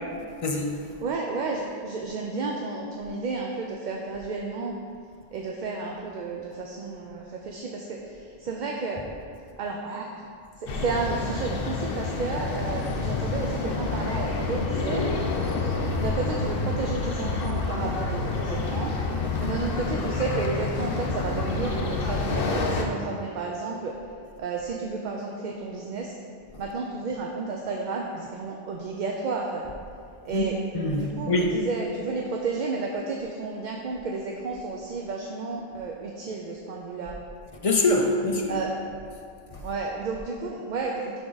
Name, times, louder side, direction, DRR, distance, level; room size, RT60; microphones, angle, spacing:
voice 1, 0.4-0.7 14.7-15.3 15.9-16.0 30.3-30.4 30.7-31.6 37.6-38.6 39.5-39.6, left 2 dB, 40° left, 1 dB, 0.6 m, -25 dB
voice 2, 1.0-4.7 5.3-9.1 9.6-10.3 10.6-15.0 16.0-18.9 19.4-23.9 24.4-26.1 26.6-29.6 30.2-30.6 30.9-37.2 38.5-38.8 39.6-41.2, right 4 dB, 55° right, 0 dB, 0.6 m, -32 dB
sound 1, 10.7-22.8, left 3 dB, 65° left, 0.9 m, -28 dB
11.0 x 3.7 x 3.9 m, 2.4 s
omnidirectional pair, 1.0 m